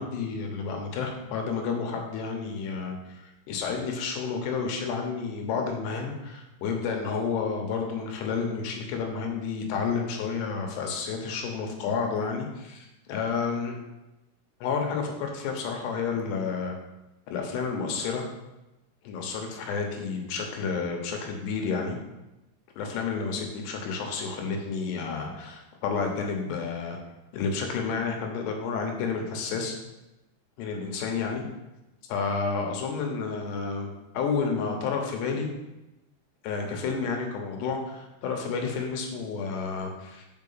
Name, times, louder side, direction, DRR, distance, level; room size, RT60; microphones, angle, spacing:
voice 1, 0.0-3.2 3.5-13.8 14.6-16.8 17.3-18.2 19.0-22.0 22.8-27.0 27.3-29.8 30.6-31.4 32.1-35.5 36.4-40.3, left 5 dB, 80° left, 2 dB, 3.2 m, -30 dB
5.8 x 5.5 x 5.6 m, 0.98 s
omnidirectional pair, 4.8 m